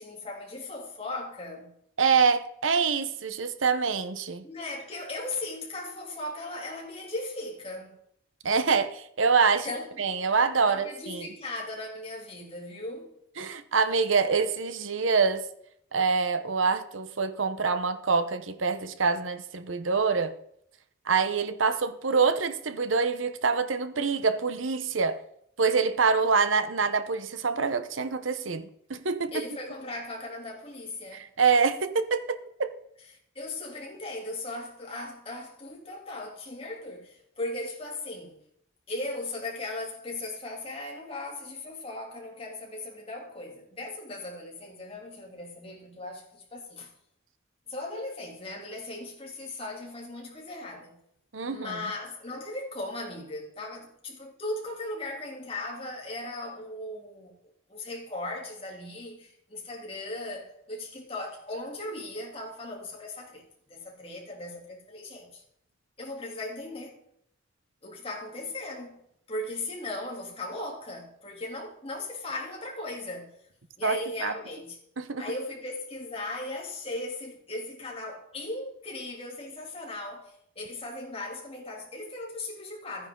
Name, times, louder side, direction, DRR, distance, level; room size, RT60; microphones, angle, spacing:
voice 1, 0.0-1.7 4.4-8.0 9.5-10.2 10.6-13.1 29.3-31.3 33.3-38.4 38.9-46.9 47.7-51.0 51.5-63.4 63.7-65.4 66.0-67.0 67.8-73.3 73.8-74.8 75.2-83.1, left 2 dB, 30° left, 3.2 m, -38 dB
voice 2, 2.0-4.4 8.4-9.7 10.0-11.2 13.4-15.4 15.9-20.3 21.1-25.2 25.6-29.4 31.1-32.7 51.3-51.8 73.8-74.3 75.0-75.2, right 5 dB, 85° right, 1.0 m, -26 dB
14.0 x 9.7 x 3.9 m
head